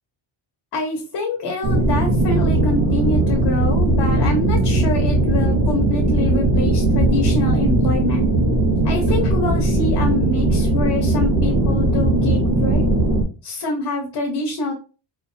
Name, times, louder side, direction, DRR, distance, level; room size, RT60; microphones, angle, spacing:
voice 1, 0.7-8.3 8.8-12.8 13.4-14.7, left 2 dB, 55° left, 0 dB, 1.2 m, -25 dB
sound 1, 1.6-13.2, right 2 dB, 50° right, 1.2 m, -18 dB
4.3 x 2.8 x 2.7 m, 0.33 s
cardioid pair, 165°, 46 cm